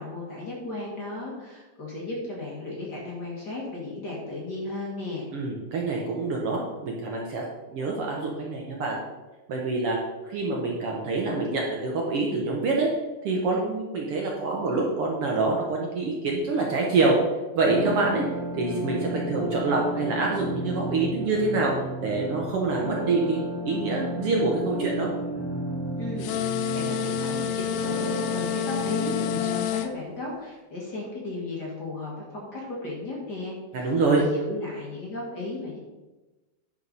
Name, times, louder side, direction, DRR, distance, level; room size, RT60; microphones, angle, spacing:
voice 1, 0.0-5.3 26.0-26.3 26.7-35.8, left 2 dB, 40° left, -4 dB, 2.0 m, -35 dB
voice 2, 5.3-7.4 7.7-9.0 9.5-10.0 10.2-12.9 13.2-17.2 17.5-18.2 18.5-21.7 22.0-23.4 23.7-25.1 33.7-34.2, right 3 dB, 60° right, -1 dB, 1.7 m, -26 dB
sound 1, 17.6-29.6, right 1 dB, 25° right, 1.7 m, -33 dB
sound 2, 26.2-29.9, left 10 dB, 80° left, 1.5 m, -29 dB
10.0 x 4.7 x 5.4 m, 1.1 s
omnidirectional pair, 3.4 m